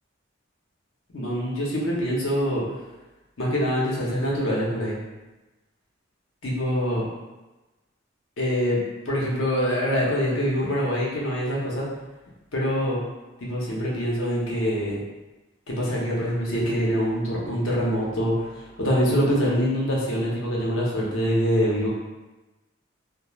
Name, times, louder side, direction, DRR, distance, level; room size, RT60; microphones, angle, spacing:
voice 1, 1.1-2.6 3.4-5.0 6.4-7.0 8.4-8.8 9.1-11.9 12.5-13.0 13.4-15.0 15.7-21.9, equal, 80° left, -5 dB, 0.8 m, -24 dB
2.3 x 2.1 x 3.0 m, 1.1 s
head